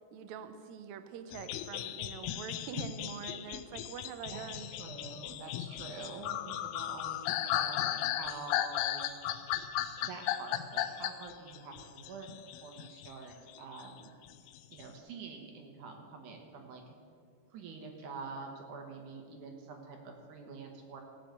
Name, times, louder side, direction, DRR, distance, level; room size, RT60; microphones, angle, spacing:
voice 1, 0.1-4.7, right 8 dB, 85° right, 10 dB, 1.6 m, -45 dB
sound 1, 1.3-13.1 13.5-14.8, left 12 dB, 90° left, 1.7 m, -36 dB
voice 2, 4.3-9.1 10.0-12.3 12.6-14.1 14.7-16.9 17.5-21.0, right 4 dB, 65° right, 3 dB, 2.4 m, -46 dB
15.5 x 6.1 x 7.9 m, 2.3 s
omnidirectional pair, 4.2 m